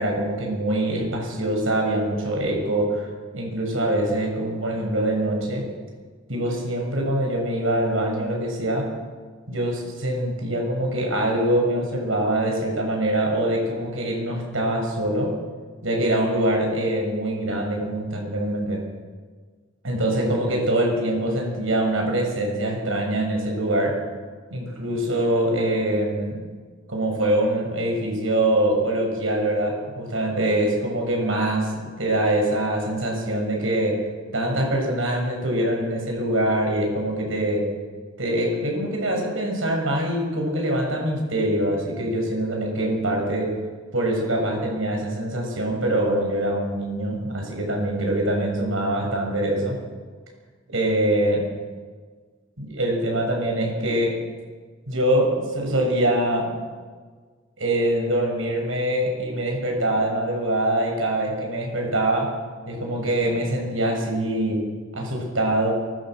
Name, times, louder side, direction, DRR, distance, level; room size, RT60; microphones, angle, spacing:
voice 1, 0.0-3.1 3.3-5.7 6.3-8.9 9.5-15.4 15.8-18.8 19.8-24.0 24.5-26.4 26.9-34.1 34.3-37.7 38.2-43.6 43.9-49.8 50.7-51.5 52.6-54.2 54.9-56.6 57.6-62.4 62.7-65.7, right 1 dB, 85° right, 1 dB, 6.9 m, -24 dB
23.0 x 16.5 x 7.8 m, 1.5 s
head